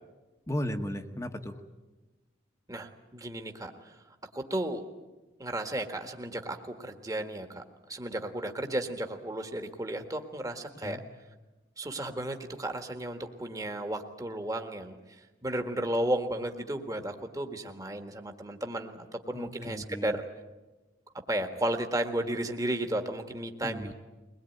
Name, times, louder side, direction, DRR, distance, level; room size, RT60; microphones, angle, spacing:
voice 1, 0.5-1.6 10.8-11.0 19.3-20.2 23.6-23.9, equal, 15° left, 5 dB, 1.2 m, -35 dB
voice 2, 2.7-4.0 4.3-4.8 5.4-7.6 7.9-11.0 11.8-15.0 15.4-20.2 21.3-23.9, right 1 dB, 20° right, 5 dB, 1.7 m, -33 dB
22.5 x 20.5 x 9.4 m, 1.2 s
head